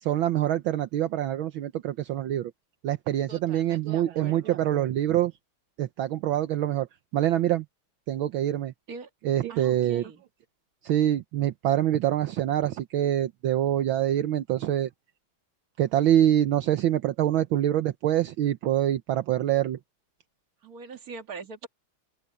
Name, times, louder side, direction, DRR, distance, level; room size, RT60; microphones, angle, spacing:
voice 1, 0.0-2.5 2.8-5.3 5.8-6.9 7.1-7.6 8.1-8.7 9.2-10.1 10.8-14.9 15.8-19.8, right 12 dB, 75° right, 1.6 m, -25 dB
voice 2, 3.3-4.6 8.9-9.1 9.5-10.2 20.6-21.7, right 4 dB, 45° right, 2.2 m, -42 dB
open air
omnidirectional pair, 2.3 m